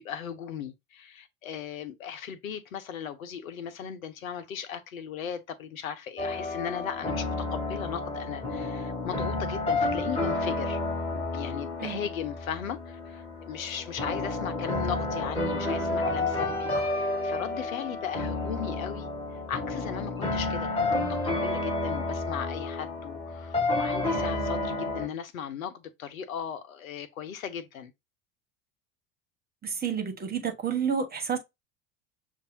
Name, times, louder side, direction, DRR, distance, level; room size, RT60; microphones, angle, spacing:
voice 1, 0.0-10.8 11.1-19.1 19.5-27.9, left 8 dB, 75° left, 1.0 m, -37 dB
sound 1, 6.2-25.1, left 2 dB, 15° left, 3.3 m, -30 dB
voice 2, 29.6-31.4, right 7 dB, 20° right, 1.6 m, -30 dB
6.8 x 2.8 x 2.8 m
figure-of-eight pair, 75°, 41 cm